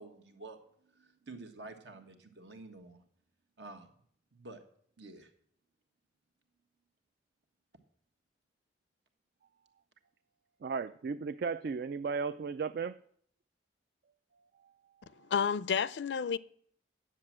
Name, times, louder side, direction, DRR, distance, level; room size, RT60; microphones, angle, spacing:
voice 1, 0.0-3.0 3.6-3.9 4.3-4.6 5.0-5.3, right 2 dB, 75° right, 1.5 m, -49 dB
voice 2, 10.6-13.0, right 5 dB, 60° right, 0.3 m, -35 dB
voice 3, 15.2-16.4, left 7 dB, 75° left, 0.4 m, -31 dB
9.9 x 7.4 x 7.4 m
head